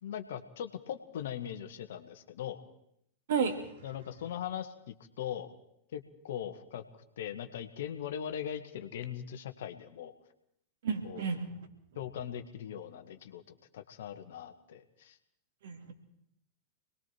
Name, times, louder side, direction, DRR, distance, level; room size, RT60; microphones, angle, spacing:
voice 1, 0.0-2.6 3.8-5.5 5.9-6.8 7.2-10.1 11.0-11.2 12.0-15.2, left 9 dB, 60° left, 8 dB, 1.8 m, -40 dB
voice 2, 3.3-3.8 10.8-11.5 15.6-15.9, right 6 dB, 60° right, 5 dB, 3.0 m, -32 dB
27.5 x 20.5 x 4.7 m, 0.75 s
figure-of-eight pair, 90°, 0 cm